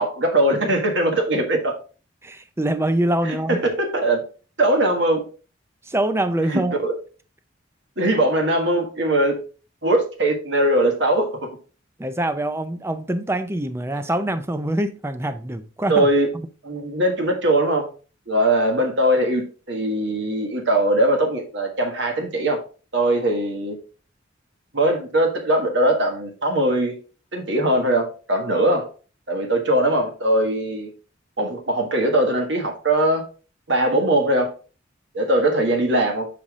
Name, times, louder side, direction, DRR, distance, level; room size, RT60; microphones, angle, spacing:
voice 1, 0.0-1.7 3.3-4.2 4.6-5.2 6.5-6.9 8.0-9.4 9.8-11.5 15.9-16.3 16.6-17.9 18.3-22.6 22.9-23.8 24.7-27.0 27.3-28.9 29.3-30.9 31.4-33.2 33.7-34.5 35.1-36.3, right 1 dB, 65° right, 1.5 m, -21 dB
voice 2, 2.2-3.6 5.8-6.7 12.0-16.1, right 1 dB, 15° right, 0.5 m, -24 dB
5.9 x 5.0 x 3.6 m
head